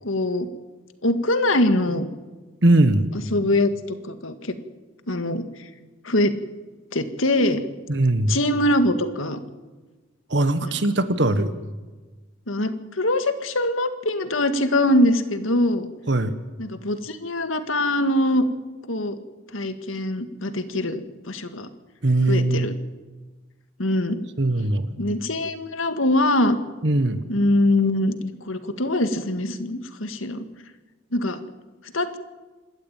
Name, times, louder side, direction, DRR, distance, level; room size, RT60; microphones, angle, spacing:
voice 1, 0.0-0.5 1.0-2.0 3.3-3.7 4.0-4.5 5.1-5.4 6.0-6.4 6.9-7.6 8.3-9.4 10.6-10.8 12.5-15.9 16.6-18.4 18.9-19.2 19.5-21.7 22.3-22.7 23.8-24.2 25.0-26.6 27.3-30.5 31.1-31.4 31.9-32.2, left 1 dB, 85° left, 9 dB, 1.9 m, -23 dB
voice 2, 2.6-3.1 7.9-8.4 10.3-11.5 16.1-16.3 22.0-22.7 24.4-24.9 26.8-27.3, right 2 dB, 60° right, 11 dB, 1.3 m, -20 dB
27.0 x 13.0 x 9.1 m, 1.2 s
head